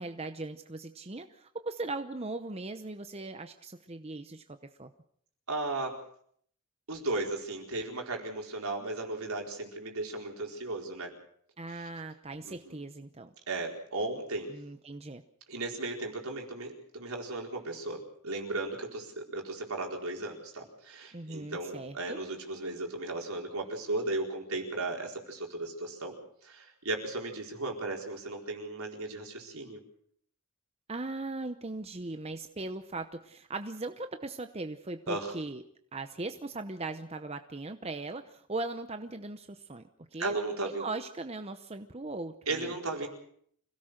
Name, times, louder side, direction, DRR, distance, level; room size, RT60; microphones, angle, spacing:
voice 1, 0.0-4.9 11.6-13.3 14.5-15.2 21.1-22.2 30.9-35.6 35.9-40.4 40.8-42.7, right 2 dB, 25° right, 8 dB, 0.8 m, -39 dB
voice 2, 5.5-6.0 6.9-11.1 11.7-11.9 12.4-12.8 13.5-14.5 15.5-26.2 26.4-29.8 35.1-35.3 40.2-40.9 42.5-43.1, right 2 dB, 75° right, 1 dB, 4.5 m, -36 dB
26.0 x 17.0 x 6.4 m, 0.64 s
head